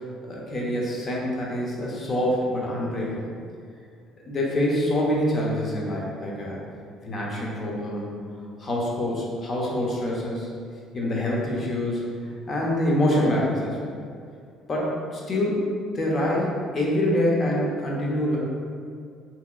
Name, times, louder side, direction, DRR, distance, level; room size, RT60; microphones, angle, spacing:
voice 1, 0.2-3.3 4.3-6.6 7.1-8.1 8.6-10.5 10.9-12.0 12.5-13.8 14.7-15.7 15.9-18.4, left 1 dB, 40° left, -3 dB, 0.8 m, -25 dB
3.4 x 3.0 x 2.2 m, 2.2 s
supercardioid pair, 75°, 0 cm